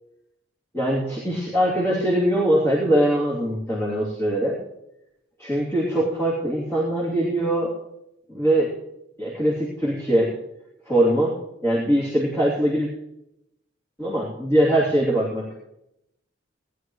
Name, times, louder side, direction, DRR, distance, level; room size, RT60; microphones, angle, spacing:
voice 1, 0.7-4.6 5.4-7.7 8.3-8.7 9.2-10.3 10.8-11.3 11.6-12.9 14.0-15.5, right 1 dB, 15° left, -7 dB, 3.0 m, -22 dB
19.0 x 11.0 x 3.2 m, 0.85 s
head